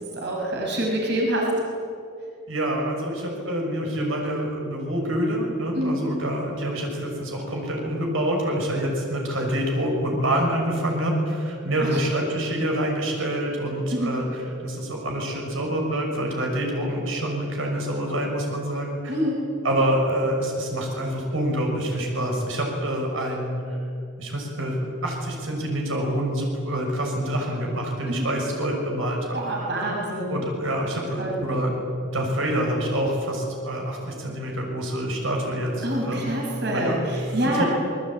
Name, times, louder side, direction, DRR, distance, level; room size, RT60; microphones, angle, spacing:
voice 1, 0.0-1.5 5.7-6.1 11.8-12.0 13.9-14.1 19.1-19.4 28.1-28.3 29.3-30.3 31.2-31.4 35.8-37.6, right 1 dB, 50° right, -1 dB, 6.1 m, -26 dB
voice 2, 2.5-19.2 19.6-23.8 24.2-29.4 30.3-31.7 32.0-36.3 36.7-37.1 37.5-37.6, right 1 dB, 70° right, 0 dB, 6.3 m, -26 dB
27.5 x 22.0 x 8.9 m, 2.5 s
head